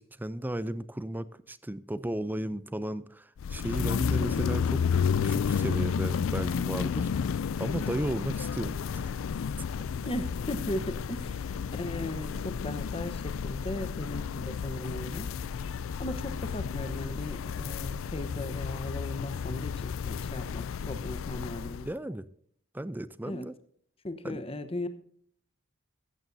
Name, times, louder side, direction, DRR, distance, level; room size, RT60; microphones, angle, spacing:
voice 1, 0.0-4.8 5.2-7.1 7.6-9.1 10.8-10.9 21.8-22.3 22.7-23.5 24.2-24.4, right 1 dB, 10° right, 15 dB, 0.5 m, -35 dB
sound 1, 3.4-21.9, left 6 dB, 70° left, 0.4 m, -32 dB
voice 2, 10.1-15.3 16.0-21.9 23.2-23.5 24.0-24.9, left 1 dB, 30° left, 10 dB, 1.1 m, -37 dB
15.5 x 14.0 x 2.7 m, 0.62 s
head